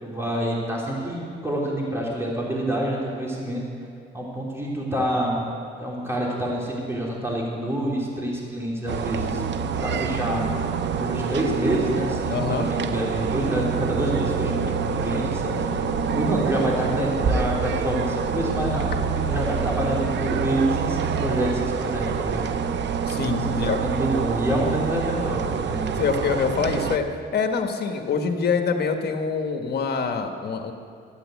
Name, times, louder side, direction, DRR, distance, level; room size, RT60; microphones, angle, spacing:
voice 1, 0.0-3.6 4.1-5.4 5.8-9.4 9.8-10.6 11.0-22.4 23.1-26.0, right 1 dB, 10° right, -4 dB, 3.4 m, -27 dB
sound 1, 8.9-27.0, right 6 dB, 65° right, 0.8 m, -26 dB
voice 2, 12.3-12.7 17.1-17.2 23.1-23.8 25.9-27.1 27.3-30.7, left 5 dB, 55° left, 5 dB, 1.5 m, -25 dB
sound 2, 13.7-18.7, right 1 dB, 85° right, 2.0 m, -34 dB
12.5 x 9.0 x 9.1 m, 2.4 s
cardioid pair, 90°, 20 cm